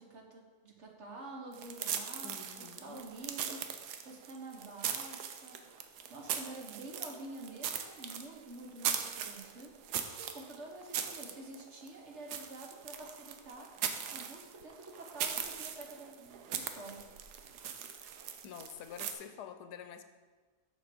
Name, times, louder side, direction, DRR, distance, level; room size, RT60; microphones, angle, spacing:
voice 1, 0.0-5.6 6.1-13.7 14.1-17.1, right 2 dB, 50° right, 1 dB, 1.3 m, -48 dB
sound 1, 1.5-19.1, right 8 dB, 85° right, 1.3 m, -40 dB
voice 2, 2.2-3.0 18.4-20.0, left 8 dB, 85° left, 9 dB, 1.2 m, -47 dB
7.0 x 6.8 x 5.2 m, 1.4 s
omnidirectional pair, 1.7 m